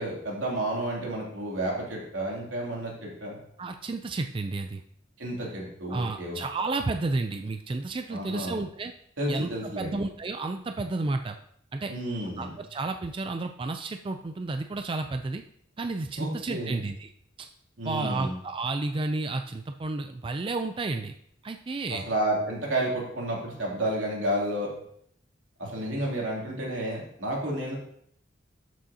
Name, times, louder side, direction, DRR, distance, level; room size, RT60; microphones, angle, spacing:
voice 1, 0.0-3.4 5.2-6.4 8.1-8.6 9.2-10.0 11.9-12.5 16.2-16.8 17.8-18.3 21.9-24.7 25.6-27.8, right 1 dB, 85° right, -3 dB, 2.8 m, -31 dB
voice 2, 3.6-4.8 5.9-8.9 9.3-11.4 11.7-11.9 12.4-15.4 15.8-17.1 17.4-17.5 17.8-21.1 21.4-22.1, right 3 dB, 25° right, 6 dB, 0.4 m, -31 dB
12.5 x 6.2 x 2.8 m, 0.68 s
head